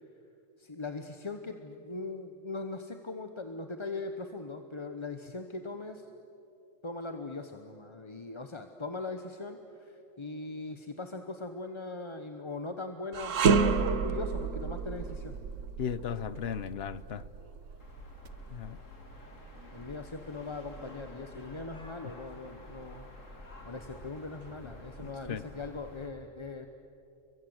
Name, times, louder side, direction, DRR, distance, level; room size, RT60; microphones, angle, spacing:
voice 1, 0.6-6.0 6.8-15.3 19.7-23.1 23.4-26.7, left 3 dB, 25° left, 1.0 m, -40 dB
sound 1, 13.1-22.4 22.8-23.0 23.8-24.7, right 5 dB, 75° right, 1.4 m, -32 dB
voice 2, 15.8-17.2 18.5-18.8 25.0-25.4, left 8 dB, 55° left, 1.0 m, -36 dB
sound 2, 17.8-26.1, left 1 dB, 75° left, 3.2 m, -49 dB
30.0 x 23.5 x 7.9 m
omnidirectional pair, 1.3 m